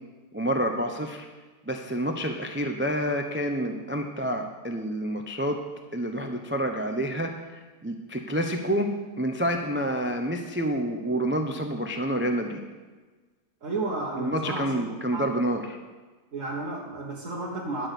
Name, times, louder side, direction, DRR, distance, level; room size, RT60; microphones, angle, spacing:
voice 1, 0.3-1.3 1.6-5.6 5.9-7.3 7.8-8.9 9.2-12.6 14.2-15.6, right 1 dB, 15° right, 5 dB, 0.4 m, -28 dB
voice 2, 13.6-15.3 16.3-17.9, right 2 dB, 50° right, -4 dB, 1.8 m, -33 dB
11.0 x 6.2 x 8.2 m, 1.3 s
omnidirectional pair, 1.7 m